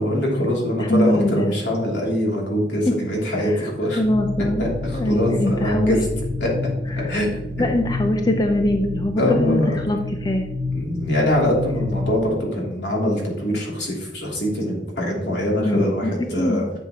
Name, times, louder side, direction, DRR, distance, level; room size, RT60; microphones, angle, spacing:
voice 1, 0.0-4.0 4.6-6.0 6.4-6.5 7.1-7.7 9.2-9.7 10.7-16.8, equal, 75° left, -3 dB, 2.9 m, -23 dB
voice 2, 0.8-1.5 3.4-3.7 4.0-4.6 4.9-6.0 6.9-7.1 7.6-10.5 15.6-16.1 16.4-16.6, left 1 dB, 25° left, 5 dB, 0.5 m, -22 dB
sound 1, 4.0-12.1, left 3 dB, 65° right, 2.1 m, -29 dB
10.0 x 6.4 x 2.9 m, 0.97 s
head